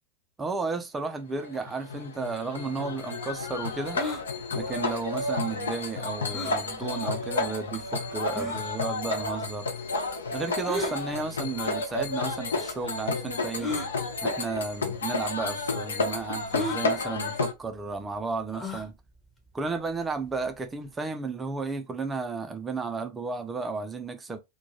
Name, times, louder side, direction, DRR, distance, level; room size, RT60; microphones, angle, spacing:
voice 1, 0.4-4.0 4.5-9.7 10.3-13.7 14.2-18.9 19.5-24.4, right 4 dB, 15° right, 0.4 m, -33 dB
sound 1, 1.4-17.5, left 3 dB, 70° left, 0.4 m, -31 dB
sound 2, 3.9-4.2 6.3-6.6 7.4-7.5 8.4-8.6 10.6-11.0 12.0-12.1 13.6-13.9 14.8-15.0 15.2-15.3 16.5-16.8 18.5-18.9, left 1 dB, 10° left, 0.8 m, -33 dB
2.2 x 2.1 x 2.8 m
figure-of-eight pair, 90°, 0 cm